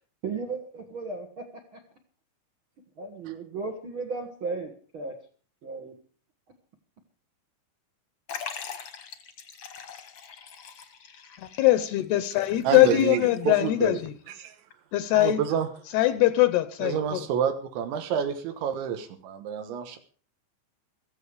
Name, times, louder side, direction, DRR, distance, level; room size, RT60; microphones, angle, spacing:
voice 1, 0.2-1.5 1.7-1.8 3.0-5.1 5.6-5.9, right 4 dB, 65° right, 4 dB, 1.2 m, -35 dB
Liquid, 8.3-13.4 13.7-13.8 14.7-14.8, left 7 dB, 55° left, 1.6 m, -42 dB
voice 2, 11.4-14.1 14.9-15.4 15.9-17.3, left 15 dB, 75° left, 13 dB, 2.6 m, -22 dB
voice 3, 12.7-14.0 14.4-14.6 15.2-15.7 16.8-20.0, right 8 dB, 85° right, 6 dB, 3.7 m, -28 dB
16.0 x 15.0 x 4.9 m, 0.41 s
omnidirectional pair, 5.2 m